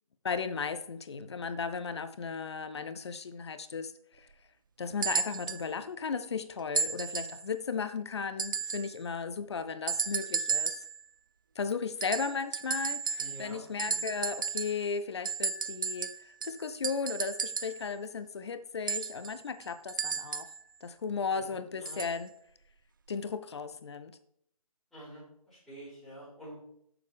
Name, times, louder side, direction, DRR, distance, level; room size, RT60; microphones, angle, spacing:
voice 1, 0.2-4.3 4.8-10.8 11.6-20.5 20.8-22.3 23.1-24.2, left 5 dB, 45° left, 12 dB, 0.7 m, -35 dB
sound 1, 5.0-5.7 6.8-7.4 8.4-8.9 9.9-11.0 12.0-13.5 13.8-14.9 15.3-17.8 18.9-20.6 21.9-22.2 23.1-23.2, right 6 dB, 35° right, 0.4 m, -34 dB
voice 2, 13.2-13.6 13.9-14.0 21.3-22.0 24.9-26.5, right 1 dB, ahead, -11 dB, 4.8 m, -48 dB
14.0 x 7.0 x 3.5 m, 0.72 s
figure-of-eight pair, 150°, 19 cm